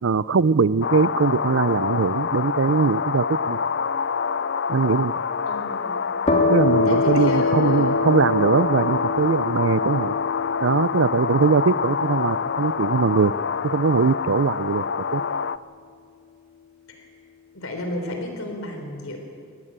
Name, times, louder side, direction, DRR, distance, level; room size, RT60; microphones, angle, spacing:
voice 1, 0.0-3.6 4.7-5.1 6.5-10.2 10.6-13.3 13.6-14.8 15.1-15.2, right 5 dB, 65° right, 19 dB, 0.5 m, -21 dB
sound 1, 0.8-15.6, left 5 dB, 55° left, 0.5 m, -26 dB
voice 2, 5.5-5.9 6.9-7.9 16.9-17.1 17.5-19.2, left 1 dB, 85° left, 4 dB, 3.8 m, -32 dB
sound 2, 6.2-13.7, left 3 dB, 35° left, 3.2 m, -26 dB
22.5 x 19.5 x 9.0 m, 2.2 s
head